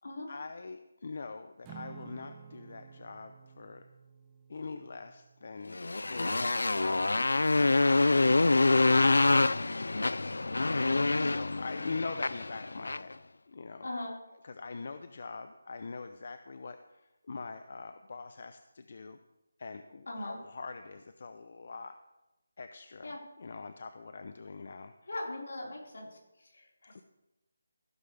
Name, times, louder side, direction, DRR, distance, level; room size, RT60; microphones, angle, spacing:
voice 1, 0.3-3.8 4.5-9.7 10.6-13.2 13.5-13.9 14.4-19.2 19.6-22.0 22.6-24.9 26.9-27.0, left 4 dB, 40° left, 9 dB, 0.5 m, -43 dB
Acoustic guitar / Strum, 1.6-6.1, right 7 dB, 10° right, 0.7 m, -52 dB
Motorcycle, 5.7-13.1, left 2 dB, 85° left, 0.4 m, -26 dB
voice 2, 13.8-14.2 20.1-20.4 23.0-23.2 25.1-27.0, left 1 dB, 65° left, -3 dB, 4.6 m, -40 dB
15.0 x 12.0 x 3.4 m, 0.97 s
figure-of-eight pair, 175°, 0 cm